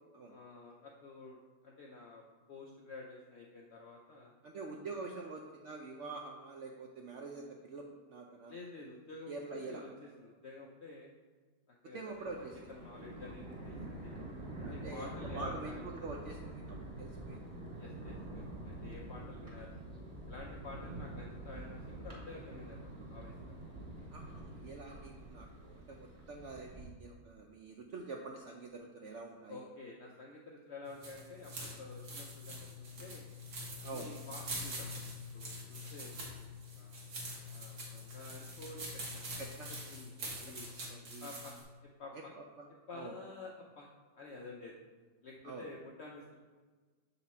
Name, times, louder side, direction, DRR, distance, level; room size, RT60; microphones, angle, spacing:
voice 1, 0.3-2.2 2.5-4.3 8.5-11.1 11.7-14.2 14.7-15.8 17.8-19.8 20.3-23.6 29.5-33.2 33.8-36.1 36.7-37.1 37.5-38.9 39.1-39.2 39.7-40.7 41.2-41.5 42.0-42.3 42.9-43.9 44.1-44.8 45.2-46.4, left 3 dB, 75° left, -1 dB, 0.6 m, -50 dB
voice 2, 4.4-8.5 9.3-9.8 11.9-12.6 14.6-17.4 24.1-29.6 33.8-34.1 39.4-39.7 40.4-40.5 40.9-41.3 42.1-42.6 42.9-43.1 45.4-45.6, right 3 dB, 80° right, 1 dB, 0.6 m, -46 dB
Thunder, 12.1-26.9, right 1 dB, 30° right, 1.3 m, -46 dB
sound 1, 30.9-41.6, equal, 60° right, 1.7 m, -44 dB
6.9 x 4.1 x 4.1 m, 1.4 s
omnidirectional pair, 1.9 m